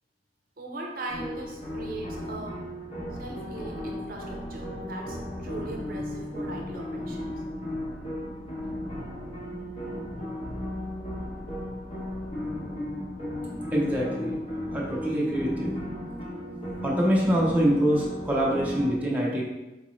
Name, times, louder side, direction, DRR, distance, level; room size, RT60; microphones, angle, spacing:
voice 1, 0.6-2.6 3.1-7.4, right 2 dB, 55° right, 0 dB, 0.5 m, -39 dB
sound 1, 1.1-18.9, left 1 dB, 35° left, 0.8 m, -35 dB
voice 2, 13.7-14.4 14.7-15.7 16.8-19.4, equal, 10° right, -5 dB, 0.5 m, -25 dB
3.8 x 2.5 x 3.0 m, 1.0 s
head